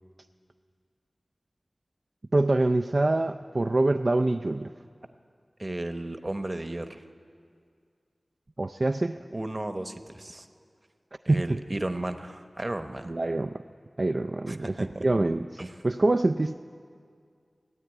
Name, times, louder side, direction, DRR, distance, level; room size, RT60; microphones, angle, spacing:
voice 1, 2.3-4.7 8.6-9.2 11.3-11.6 13.0-13.5 14.0-16.5, right 2 dB, 50° right, 7 dB, 0.3 m, -25 dB
voice 2, 5.6-7.0 9.3-10.5 11.2-13.1 14.5-15.0 15.6-15.7, right 1 dB, 35° right, 8 dB, 0.9 m, -34 dB
16.5 x 9.2 x 9.1 m, 2.2 s
wide cardioid pair, 55°, 0 cm